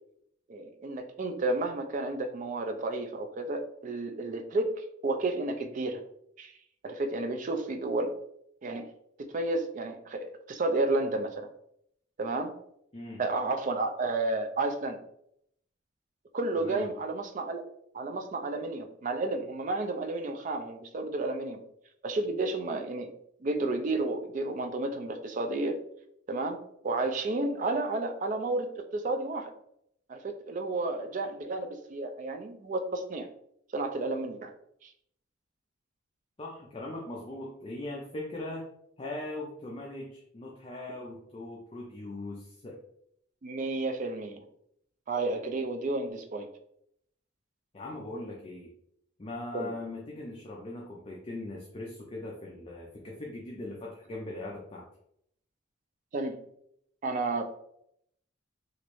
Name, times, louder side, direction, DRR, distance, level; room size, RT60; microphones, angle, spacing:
voice 1, 0.5-4.7 5.0-6.0 6.4-6.5 6.8-8.1 8.6-8.9 9.3-11.5 12.2-12.5 13.2-15.0 16.3-17.6 17.9-21.6 22.0-23.1 23.4-25.8 26.3-28.7 28.9-29.5 30.1-33.3 33.7-34.5 34.8-34.9 43.4-44.4 45.1-46.5 49.5-49.7 56.1-56.4 57.0-57.4, right 2 dB, 40° right, 6 dB, 0.4 m, -31 dB
voice 2, 12.9-13.2 16.6-16.9 36.4-38.7 39.0-42.8 47.7-48.7 49.2-54.8, left 2 dB, 30° left, -2 dB, 0.4 m, -40 dB
3.1 x 2.5 x 3.0 m, 0.72 s
head